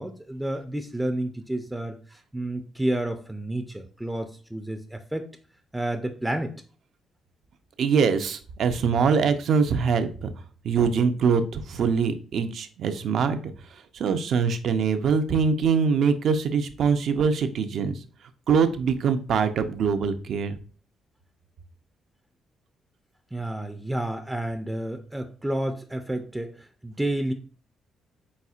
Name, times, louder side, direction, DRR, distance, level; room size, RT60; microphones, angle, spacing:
voice 1, 0.0-5.3 5.7-6.5 23.3-27.3, right 1 dB, 5° right, 7 dB, 0.4 m, -30 dB
voice 2, 7.8-10.3 10.6-13.4 13.9-18.0 18.5-20.6, right 6 dB, 65° right, 9 dB, 0.5 m, -23 dB
4.1 x 4.1 x 2.4 m, 0.40 s
cardioid pair, 90°, 0 cm